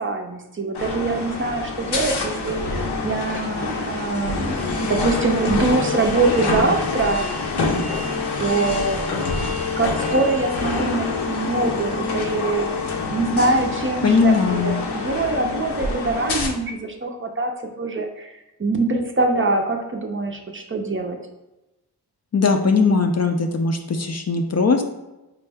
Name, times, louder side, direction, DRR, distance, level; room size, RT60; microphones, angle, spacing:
voice 1, 0.0-7.3 8.4-9.3 9.8-14.3 14.6-18.3 18.6-21.2, right 3 dB, 30° right, 3 dB, 0.4 m, -24 dB
sound 1, 0.7-16.5, left 3 dB, 75° left, 0.7 m, -26 dB
voice 2, 14.0-14.8 22.3-24.8, left 4 dB, 40° left, 4 dB, 0.4 m, -19 dB
4.5 x 2.1 x 3.4 m, 0.97 s
wide cardioid pair, 65°, 40 cm